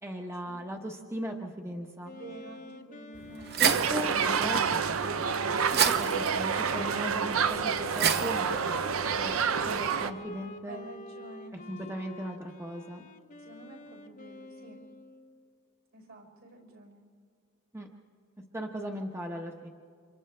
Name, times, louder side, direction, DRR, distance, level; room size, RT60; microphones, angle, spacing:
voice 1, 0.0-2.2 3.6-4.6 4.9-5.3 5.7-8.8 9.1-9.4 9.7-10.8 11.7-13.1 17.7-17.9 18.5-19.7, equal, 10° right, 1 dB, 1.0 m, -38 dB
Wind instrument woodwind instrument, 2.0-15.4, left 1 dB, 40° left, 0.8 m, -47 dB
voice 2, 2.1-3.8 10.7-11.6 13.4-14.8 15.9-17.0, right 2 dB, 70° right, 1 dB, 5.0 m, -49 dB
sound 1, 3.1-9.9, right 8 dB, 50° right, 0.8 m, -33 dB
sound 2, 3.6-10.1, right 6 dB, 85° right, 0.7 m, -28 dB
29.5 x 26.5 x 3.4 m, 2.1 s
head